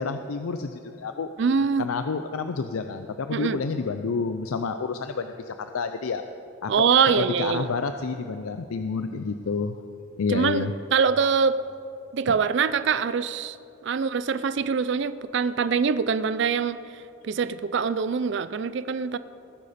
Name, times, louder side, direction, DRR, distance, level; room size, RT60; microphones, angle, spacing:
voice 1, 0.0-1.3 1.8-6.2 6.6-9.8 10.2-10.7, left 4 dB, 85° left, 8 dB, 0.5 m, -29 dB
voice 2, 1.4-1.9 3.3-3.6 6.7-7.7 10.3-11.5 12.1-13.6 13.8-16.8 17.2-19.2, right 6 dB, 55° right, 14 dB, 0.4 m, -24 dB
19.0 x 10.0 x 4.2 m, 2.6 s
head